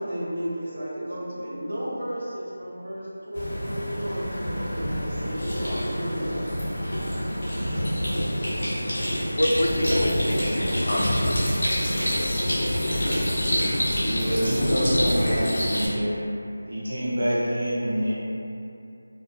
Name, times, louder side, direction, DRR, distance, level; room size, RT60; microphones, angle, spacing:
voice 1, 0.0-6.6 9.9-10.0 13.9-15.4, equal, 45° right, -7 dB, 0.6 m, -33 dB
sound 1, 3.3-15.9, equal, 35° left, 0.6 m, -26 dB
voice 2, 9.3-11.4 12.7-12.8, equal, 75° left, 0 dB, 0.3 m, -26 dB
voice 3, 14.1-16.2 16.6-18.2, equal, 80° right, -7 dB, 0.8 m, -26 dB
2.1 x 2.1 x 2.9 m, 2.7 s
figure-of-eight pair, 180°, 0 cm